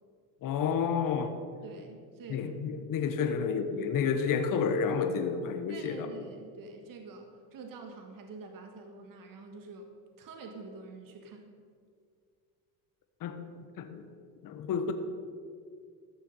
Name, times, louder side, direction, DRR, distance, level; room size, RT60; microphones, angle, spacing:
voice 1, 0.4-1.3 2.3-6.1 13.2-13.4 13.8-14.1 14.4-14.9, left 6 dB, 45° left, 8 dB, 1.0 m, -30 dB
voice 2, 1.6-2.5 3.2-3.4 5.7-9.9 10.2-11.6, right 3 dB, 45° right, 4 dB, 1.5 m, -47 dB
14.0 x 6.9 x 5.3 m, 2.2 s
supercardioid pair, 95°, 45 cm